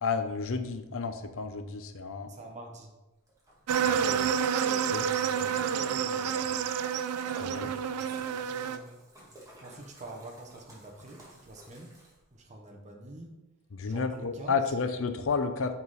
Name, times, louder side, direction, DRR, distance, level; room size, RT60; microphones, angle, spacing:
voice 1, 0.0-2.3 3.8-4.3 4.9-5.1 7.4-7.7 13.7-15.8, left 5 dB, 65° left, 8 dB, 0.7 m, -31 dB
voice 2, 2.3-2.9 5.2-6.7 7.9-9.0 9.6-11.9 12.3-13.3 13.9-14.7, right 2 dB, 30° right, 1 dB, 1.0 m, -47 dB
Splash splatter, 3.3-12.4, right 1 dB, 15° right, 1.6 m, -52 dB
sound 1, 3.7-8.8, right 8 dB, 80° right, 0.4 m, -29 dB
9.4 x 3.7 x 4.1 m, 1.0 s
head